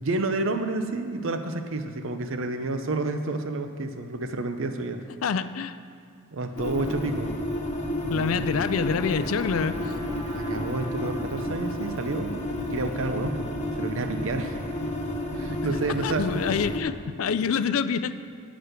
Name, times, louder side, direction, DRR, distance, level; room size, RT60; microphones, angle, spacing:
voice 1, 0.0-5.0 6.3-7.3 8.0-8.7 10.3-14.6 15.3-16.3, right 2 dB, 65° right, 7 dB, 0.7 m, -30 dB
voice 2, 5.2-5.8 8.1-9.7 16.0-18.1, left 6 dB, 75° left, 12 dB, 0.4 m, -26 dB
sound 1, 6.6-16.8, left 1 dB, 35° left, 0.9 m, -31 dB
Trumpet, 6.6-12.4, right 1 dB, 20° right, 1.3 m, -46 dB
9.4 x 6.1 x 8.0 m, 2.2 s
head